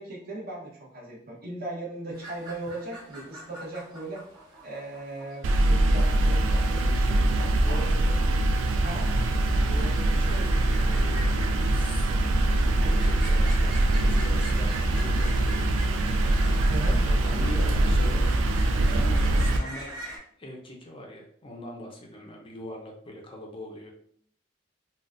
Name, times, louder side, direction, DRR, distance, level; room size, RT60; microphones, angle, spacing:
voice 1, 0.0-4.2 4.6-7.2 7.7-8.4 8.8-9.1 10.3-10.6 16.7-17.0, right 2 dB, 50° right, -3 dB, 0.9 m, -38 dB
sound 1, 2.1-20.2, right 2 dB, 25° right, 1.2 m, -44 dB
sound 2, 5.4-19.6, right 1 dB, 80° right, 0.3 m, -23 dB
voice 2, 7.6-8.2 8.9-9.1 9.6-11.2 11.7-12.3 12.8-16.0 16.3-18.3 18.7-19.9 20.4-23.9, left 1 dB, 30° left, 1 dB, 0.5 m, -42 dB
3.9 x 2.2 x 2.4 m, 0.63 s
head